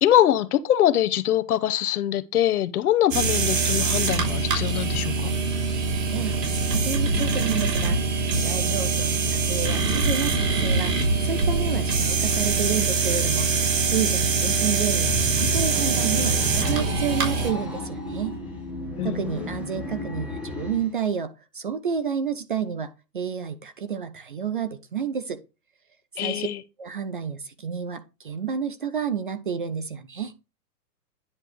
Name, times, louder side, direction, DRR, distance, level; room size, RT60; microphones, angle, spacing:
voice 1, 0.0-5.3 19.0-19.5 26.2-26.6, left 11 dB, 60° left, 0.9 m, -23 dB
sound 1, 3.1-17.5, right 4 dB, 75° right, 3.8 m, -23 dB
voice 2, 6.1-8.0 8.3-10.9 11.2-13.5 13.8-18.3 19.0-25.4 26.2-26.5 26.8-30.3, right 7 dB, 35° right, 0.4 m, -30 dB
sound 2, 14.8-20.9, left 1 dB, 5° right, 0.9 m, -34 dB
9.9 x 3.4 x 6.0 m
hypercardioid pair, 155°, 49 cm